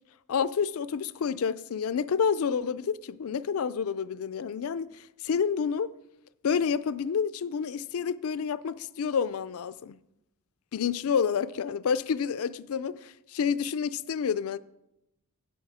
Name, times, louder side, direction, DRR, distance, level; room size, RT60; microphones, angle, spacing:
voice 1, 0.3-4.9 5.2-5.9 6.4-10.0 10.7-14.6, left 6 dB, 85° left, 0.4 m, -29 dB
16.0 x 5.5 x 4.9 m
head